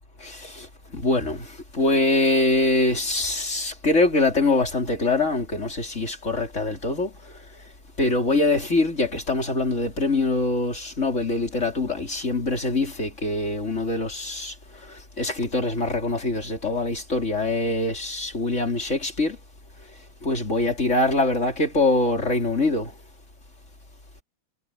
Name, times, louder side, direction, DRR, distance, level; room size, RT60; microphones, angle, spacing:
voice 1, 0.2-0.7 0.9-7.1 8.0-14.5 14.9-19.4 20.2-22.9, left 2 dB, 35° left, 4.3 m, -24 dB
omnidirectional pair, 2.3 m